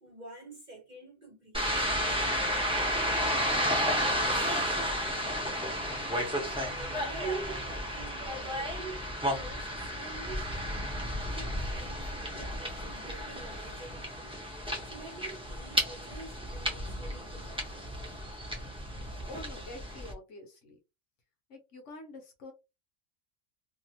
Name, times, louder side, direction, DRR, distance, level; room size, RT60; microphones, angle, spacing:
voice 1, 0.0-1.8 2.6-2.7 3.0-3.7 4.0-5.6 6.4-9.0 9.3-10.5 11.3-14.4 14.8-18.1, right 4 dB, 40° right, 0.7 m, -46 dB
sound 1, 1.5-20.1, equal, 5° right, 0.6 m, -32 dB
voice 2, 17.1-17.5 19.3-20.8 21.5-22.5, left 2 dB, 65° left, 1.2 m, -47 dB
2.7 x 2.5 x 2.8 m
omnidirectional pair, 1.4 m